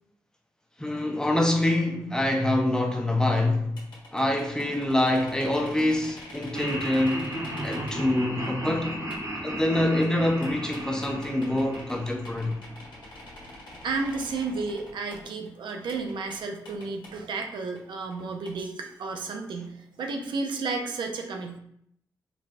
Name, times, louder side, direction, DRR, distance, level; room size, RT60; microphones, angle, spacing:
voice 1, 0.8-3.8 4.1-7.2 7.6-9.0 9.4-12.6, left 1 dB, 10° left, 0.6 m, -25 dB
sound 1, 3.8-8.2 8.4-16.4 16.6-17.8 18.1-18.5 18.8-19.2, left 1 dB, 70° left, 1.3 m, -46 dB
Laughter, 6.5-12.7, equal, 45° right, 1.0 m, -35 dB
voice 2, 13.8-21.6, right 3 dB, 75° right, 0.5 m, -32 dB
4.0 x 2.2 x 2.5 m
supercardioid pair, 45°, 8 cm